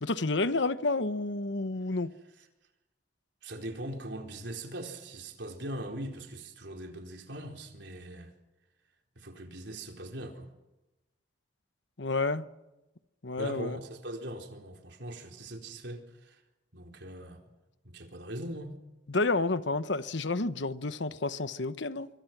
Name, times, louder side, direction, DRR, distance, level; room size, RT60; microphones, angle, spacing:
voice 1, 0.0-2.1 12.0-12.5 13.2-13.8 19.1-22.1, left 3 dB, 70° left, 1.1 m, -30 dB
voice 2, 3.4-8.3 9.2-10.5 13.4-16.4 16.7-17.4 17.8-18.8, right 1 dB, 60° right, 4.2 m, -41 dB
26.5 x 25.0 x 6.1 m
head